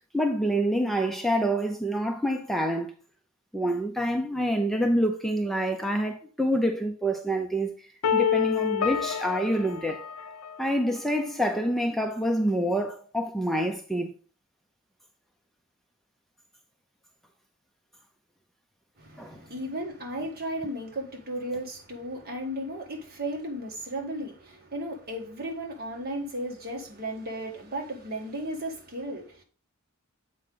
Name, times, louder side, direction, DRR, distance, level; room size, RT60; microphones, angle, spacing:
voice 1, 0.1-2.9 3.5-7.7 8.1-10.0 10.6-14.1 19.2-19.4, equal, ahead, 0.5 m, -27 dB
sound 1, 8.0-11.0, left 8 dB, 80° left, 0.5 m, -28 dB
voice 2, 19.0-29.4, right 1 dB, 45° right, 1.5 m, -35 dB
7.6 x 4.8 x 3.8 m
head